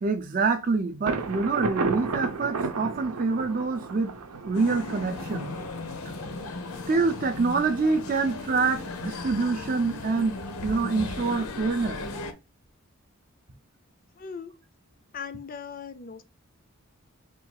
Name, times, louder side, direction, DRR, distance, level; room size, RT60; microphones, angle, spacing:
voice 1, 0.0-4.2 4.4-5.5 6.9-12.0, right 4 dB, 40° right, 0.4 m, -26 dB
Thunder, 1.1-6.7, right 4 dB, 90° right, 0.6 m, -33 dB
sound 1, 4.5-12.3, left 3 dB, 85° left, 0.8 m, -36 dB
voice 2, 14.2-14.5 15.1-16.2, left 6 dB, 40° left, 0.4 m, -38 dB
3.7 x 2.4 x 4.5 m
head